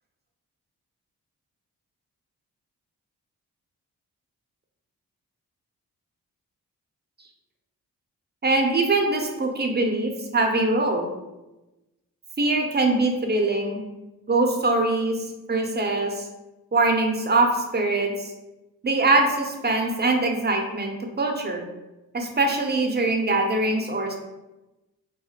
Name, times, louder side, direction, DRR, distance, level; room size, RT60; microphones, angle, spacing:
voice 1, 8.4-11.1 12.4-13.8 14.3-16.3 16.7-18.3 18.8-21.7 22.1-24.1, right 2 dB, 25° right, 3 dB, 0.5 m, -23 dB
2.3 x 2.0 x 2.8 m, 1.0 s
supercardioid pair, 40°, 38 cm